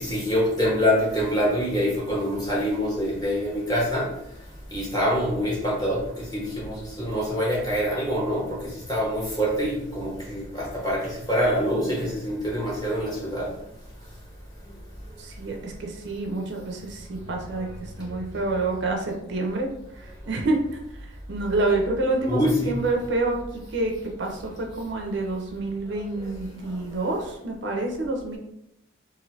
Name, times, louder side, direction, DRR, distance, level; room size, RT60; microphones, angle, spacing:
voice 1, 0.0-4.1 4.7-13.5 22.3-22.8, equal, 20° left, -5 dB, 0.9 m, -25 dB
voice 2, 15.2-19.7 19.9-20.6 21.3-28.4, right 2 dB, 55° right, 1 dB, 0.5 m, -28 dB
2.6 x 2.6 x 3.1 m, 0.79 s
head